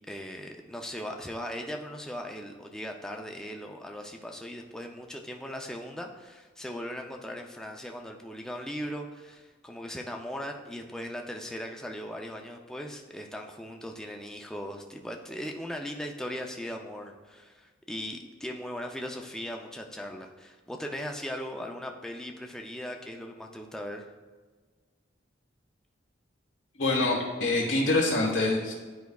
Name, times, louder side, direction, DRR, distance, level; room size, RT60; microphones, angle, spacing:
voice 1, 0.1-24.1, equal, 5° left, 1 dB, 0.4 m, -38 dB
voice 2, 26.8-28.7, left 2 dB, 90° left, -2 dB, 1.4 m, -25 dB
10.5 x 4.6 x 2.3 m, 1.4 s
head